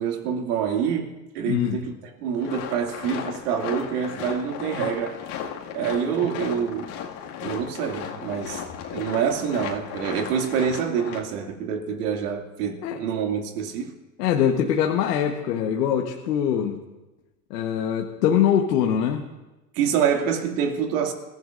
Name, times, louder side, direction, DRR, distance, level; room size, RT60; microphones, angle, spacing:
voice 1, 0.0-5.2 5.7-6.9 7.4-8.6 8.9-13.9 19.7-21.1, right 7 dB, 75° right, 2.6 m, -26 dB
voice 2, 1.4-1.8 12.8-13.0 14.2-16.8 17.5-19.2, left 9 dB, 85° left, 1.5 m, -23 dB
sound 1, 2.4-11.2, left 8 dB, 55° left, 2.3 m, -35 dB
29.0 x 15.0 x 2.6 m
supercardioid pair, 120°, 47 cm